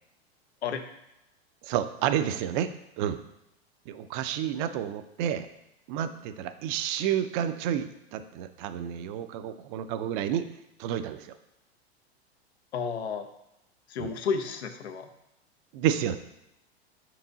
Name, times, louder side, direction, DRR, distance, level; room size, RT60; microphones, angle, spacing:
voice 1, 1.6-2.7 3.0-3.2 3.9-5.5 5.9-10.5 10.8-11.3 14.0-14.1 15.7-16.2, right 10 dB, 50° right, 10 dB, 0.6 m, -30 dB
voice 2, 12.7-13.3 13.9-15.1, left 6 dB, 80° left, 6 dB, 0.8 m, -31 dB
5.3 x 4.7 x 3.9 m, 0.85 s
hypercardioid pair, 105°, 32 cm